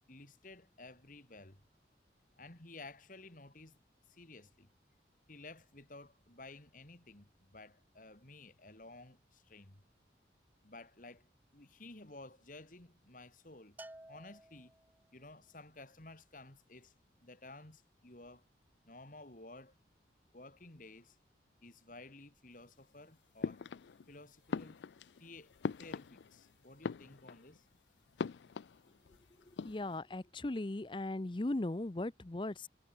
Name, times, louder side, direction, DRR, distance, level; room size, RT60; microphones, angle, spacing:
voice 1, 0.1-1.6 2.4-3.8 4.1-4.7 5.3-9.8 10.6-11.3 11.5-13.8 14.1-14.7 15.1-16.9 17.2-18.4 18.8-19.7 20.3-21.2 21.6-23.6 24.1-24.8 25.2-25.5 25.8-27.6, left 2 dB, 50° left, 2.9 m, -54 dB
Bell, 13.8-15.1, right 1 dB, 10° right, 1.0 m, -54 dB
sound 1, 23.4-24.1 24.5-26.5 26.7-27.6 28.2-29.2 29.4-30.0, left 5 dB, 80° left, 0.4 m, -41 dB
voice 2, 29.6-32.7, left 2 dB, 30° left, 0.6 m, -38 dB
head